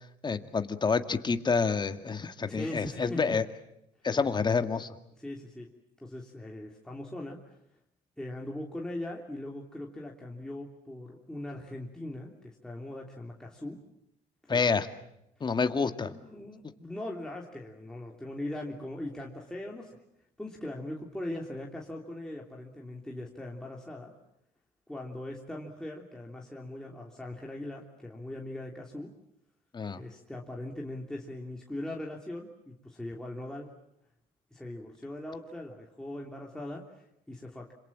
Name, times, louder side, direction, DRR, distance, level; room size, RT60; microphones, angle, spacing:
voice 1, 0.2-3.5 4.0-5.0 14.5-14.9 15.4-16.1 29.7-30.0, left 5 dB, 25° left, 8 dB, 2.0 m, -28 dB
voice 2, 2.5-3.2 5.2-5.7 6.0-7.5 8.2-13.8 14.5-14.8 16.1-20.0 20.4-24.1 24.9-29.1 30.0-33.7 34.5-37.7, left 1 dB, 5° left, -2 dB, 3.2 m, -40 dB
27.0 x 26.5 x 7.4 m, 0.81 s
cardioid pair, 110°, 17 cm